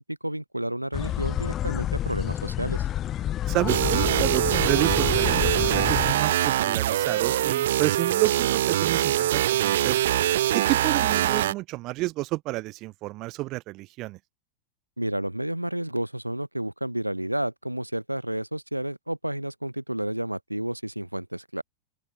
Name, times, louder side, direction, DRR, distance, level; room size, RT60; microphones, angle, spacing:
voice 1, 0.2-2.9 15.0-21.6, right 1 dB, 85° right, 1.0 m, -31 dB
sound 1, 0.9-6.1, left 12 dB, 30° left, 0.8 m, -28 dB
voice 2, 3.5-10.0 10.5-14.2, right 19 dB, 40° right, 1.0 m, -30 dB
sound 2, 3.7-11.5, right 12 dB, 60° right, 0.4 m, -23 dB
open air
figure-of-eight pair, 90°, 0 cm